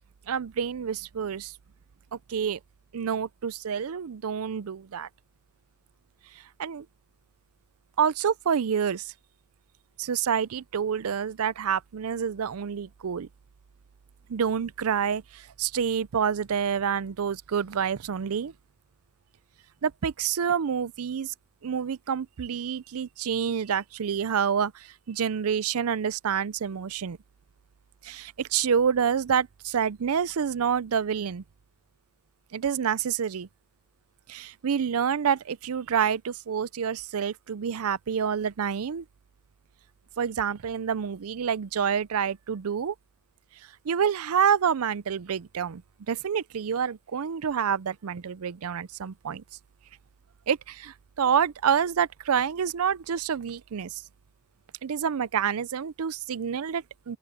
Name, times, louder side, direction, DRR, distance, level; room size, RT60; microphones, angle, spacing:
voice 1, 0.3-1.5 2.1-2.6 2.9-5.1 6.6-6.9 8.0-9.1 10.0-13.3 14.3-18.5 19.8-21.3 21.6-27.2 28.0-31.4 32.5-33.5 34.3-39.0 40.2-42.9 43.8-45.8 46.1-49.4 50.5-54.0 54.8-57.2, right 7 dB, 85° right, 0.5 m, -28 dB
open air
head